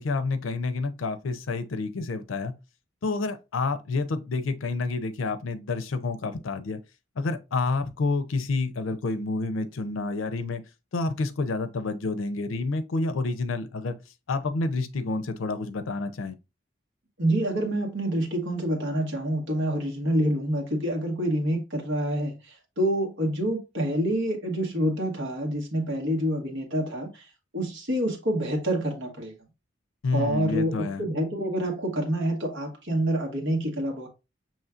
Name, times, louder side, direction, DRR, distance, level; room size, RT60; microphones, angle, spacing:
voice 1, 0.0-2.5 3.0-6.8 7.2-10.6 10.9-14.0 14.3-16.4 30.0-31.0, left 3 dB, 90° left, 0.5 m, -29 dB
voice 2, 17.2-27.2 27.5-29.3 30.1-34.1, right 1 dB, 70° right, 1.2 m, -27 dB
5.6 x 3.0 x 2.4 m
head